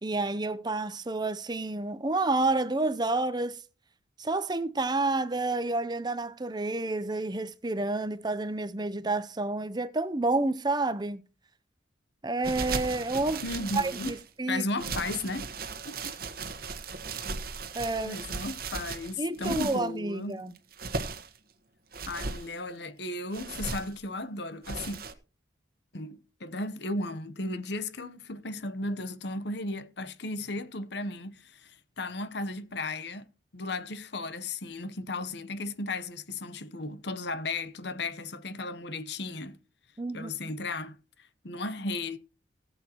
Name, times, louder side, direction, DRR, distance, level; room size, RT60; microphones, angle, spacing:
voice 1, 0.0-3.6 4.2-11.2 12.2-13.4 13.7-14.6 17.7-18.2 19.2-20.5 40.0-40.5, right 2 dB, 20° right, 0.6 m, -29 dB
sound 1, 12.4-14.3 14.8-19.9 20.6-21.4 21.9-22.5 23.3-24.0 24.6-25.1, right 4 dB, 50° right, 1.3 m, -36 dB
voice 2, 13.4-14.1 14.5-15.5 15.8-16.1 16.6-16.7 18.0-20.4 22.1-25.0 25.9-39.6 40.1-41.0 41.4-42.2, left 2 dB, 60° left, 1.0 m, -35 dB
18.5 x 8.1 x 3.0 m
head